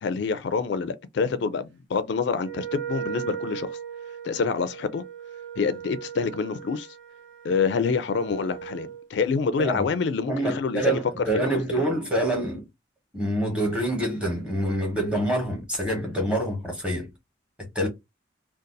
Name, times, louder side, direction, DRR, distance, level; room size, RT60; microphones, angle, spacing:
voice 1, 0.0-3.8 4.2-5.0 5.6-6.9 7.4-11.2 11.7-11.8, left 5 dB, 65° left, 0.3 m, -26 dB
Wind instrument woodwind instrument, 2.4-9.1, right 9 dB, 75° right, 0.8 m, -38 dB
voice 2, 10.3-12.7 13.1-17.1 17.6-17.9, right 1 dB, 5° right, 1.1 m, -26 dB
2.6 x 2.3 x 3.8 m
head